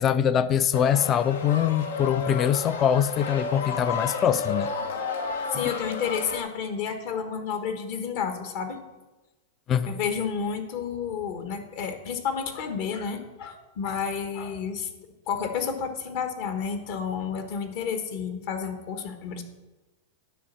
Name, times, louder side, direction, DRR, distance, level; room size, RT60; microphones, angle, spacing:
voice 1, 0.0-4.7 5.5-5.7 9.7-10.0, left 8 dB, 30° left, 15 dB, 0.4 m, -23 dB
sound 1, 0.7-6.4, left 5 dB, 80° left, 0.8 m, -32 dB
voice 2, 5.5-8.8 9.8-14.9 15.3-19.4, left 6 dB, 55° left, 7 dB, 1.3 m, -31 dB
10.0 x 4.2 x 7.2 m, 1.1 s
hypercardioid pair, 135°, 0 cm